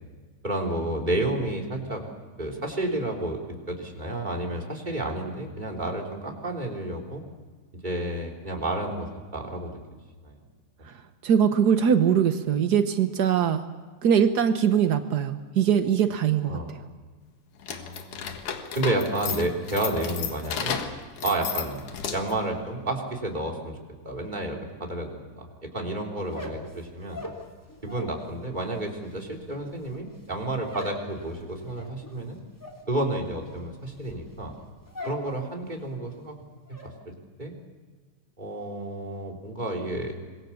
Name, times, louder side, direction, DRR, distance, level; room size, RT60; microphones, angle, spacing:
voice 1, 0.4-2.0 2.4-3.4 3.7-7.2 7.8-9.8 10.2-10.4 16.5-16.7 17.7-18.4 18.8-20.8 21.2-23.8 24.0-27.2 27.8-32.4 32.9-34.5 35.1-36.4 36.8-37.1 37.4-37.5 38.4-40.1, right 1 dB, 15° right, 0 dB, 3.4 m, -31 dB
voice 2, 11.2-13.7 14.0-16.6, right 8 dB, 80° right, 8 dB, 0.9 m, -22 dB
sound 1, 17.6-22.5, left 7 dB, 85° left, 3.2 m, -33 dB
sound 2, 26.2-28.2 28.5-35.3 35.6-36.1 36.4-36.9, left 1 dB, 5° left, 3.2 m, -41 dB
26.5 x 22.0 x 7.1 m, 1.4 s
omnidirectional pair, 3.4 m